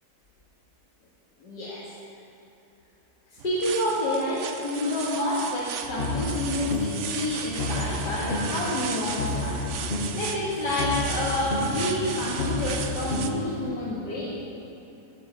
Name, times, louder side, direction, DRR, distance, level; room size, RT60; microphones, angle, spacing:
voice 1, 1.4-1.8 3.4-9.6 10.1-14.3, left 1 dB, 80° left, -8 dB, 2.4 m, -28 dB
sound 1, 3.4-13.3, right 7 dB, 60° right, 0.9 m, -36 dB
sound 2, 5.8-7.1 7.4-8.7 9.0-10.3 10.6-13.5, left 2 dB, 40° left, 1.2 m, -31 dB
14.0 x 7.7 x 7.1 m, 2.9 s
omnidirectional pair, 1.8 m